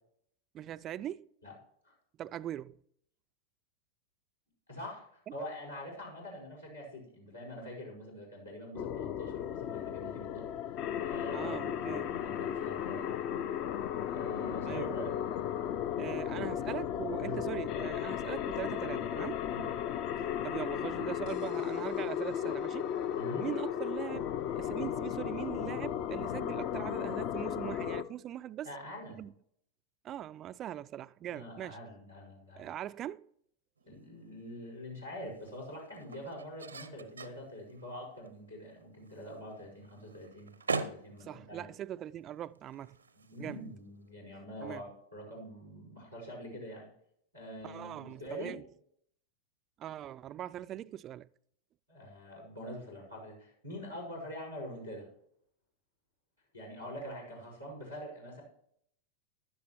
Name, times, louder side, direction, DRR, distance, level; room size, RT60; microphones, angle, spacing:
voice 1, 0.5-1.3 2.2-2.8 11.3-12.1 14.7-15.0 16.0-19.4 20.4-22.9 23.4-28.7 29.2-29.3 30.0-31.8 32.6-33.3 41.2-43.0 43.4-43.6 44.6-44.8 47.6-48.6 49.8-51.3, right 11 dB, 30° right, 0.3 m, -41 dB
voice 2, 4.7-10.5 11.0-13.1 14.1-15.1 17.2-17.4 18.9-19.0 19.4-19.7 23.2-23.5 28.6-29.3 31.2-32.7 33.8-41.7 43.1-46.9 47.3-48.5 51.9-55.1 56.5-58.4, equal, 85° left, 5.4 m, -45 dB
sound 1, 8.7-28.0, left 9 dB, 40° left, 0.6 m, -35 dB
sound 2, 33.8-44.1, right 4 dB, 75° right, 0.7 m, -44 dB
15.0 x 11.5 x 3.1 m
figure-of-eight pair, 90°, 0 cm